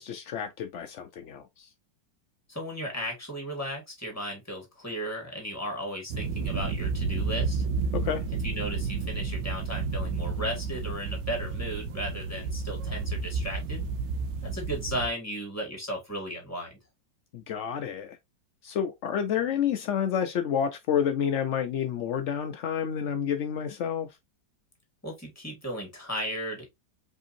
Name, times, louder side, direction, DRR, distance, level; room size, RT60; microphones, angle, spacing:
voice 1, 0.0-1.7 7.9-8.2 17.3-18.2 18.6-24.1, left 8 dB, 80° left, 0.6 m, -29 dB
voice 2, 2.5-7.7 8.4-13.9 14.4-16.7 25.0-26.7, equal, 10° left, 1.9 m, -35 dB
sound 1, 6.1-15.1, right 4 dB, 85° right, 1.3 m, -31 dB
5.0 x 3.5 x 2.7 m
omnidirectional pair, 1.9 m